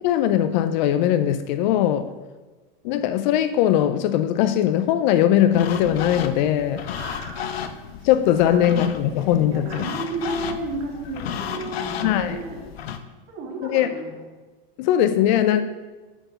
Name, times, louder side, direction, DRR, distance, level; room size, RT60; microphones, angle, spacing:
voice 1, 0.0-2.1 2.8-6.8 8.0-9.8 12.0-12.4 13.6-13.9 14.8-15.6, left 11 dB, 50° left, 11 dB, 0.5 m, -20 dB
sound 1, 5.5-13.0, left 8 dB, 85° left, 0.7 m, -33 dB
voice 2, 6.9-7.6 8.3-8.8 9.2-12.6 13.3-14.2 15.6-15.7, right 2 dB, 40° right, 0 dB, 2.0 m, -33 dB
8.1 x 3.5 x 5.6 m, 1.3 s
hypercardioid pair, 120°, 30 cm